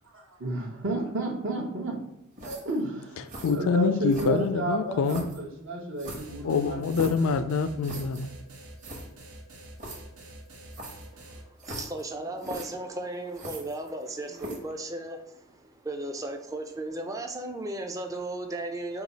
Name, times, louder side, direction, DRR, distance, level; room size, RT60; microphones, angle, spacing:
voice 1, 0.1-2.0 2.4-6.8, right 2 dB, 60° right, 0.8 m, -32 dB
sound 1, 2.4-2.8 3.3-3.6 4.1-4.6 5.0-5.4 6.0-7.3 7.8-8.2 8.5-8.6 8.8-9.0 9.8-10.0 10.7-11.1 11.6-12.0 12.4-12.7 13.3-14.0 14.4-14.7, right 1 dB, 35° right, 1.0 m, -40 dB
voice 2, 3.4-5.2 6.4-8.3, left 5 dB, 65° left, 0.3 m, -25 dB
sound 2, 6.2-11.4, right 1 dB, 85° right, 1.0 m, -46 dB
voice 3, 11.2-19.0, right 2 dB, 15° right, 0.4 m, -36 dB
4.7 x 2.3 x 4.0 m
head